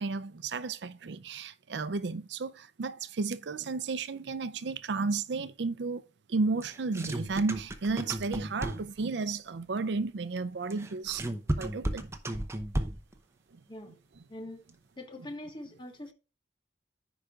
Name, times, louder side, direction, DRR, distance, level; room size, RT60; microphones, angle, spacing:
voice 1, 0.0-6.0 6.3-11.3 11.5-12.0 13.9-14.0 15.2-15.3, right 4 dB, 70° right, 0.5 m, -33 dB
sound 1, 6.6-9.1 10.7-13.2, right 1 dB, 15° right, 0.7 m, -34 dB
voice 2, 14.3-14.6 15.0-16.1, left 1 dB, 25° left, 1.5 m, -43 dB
14.5 x 5.0 x 2.4 m
head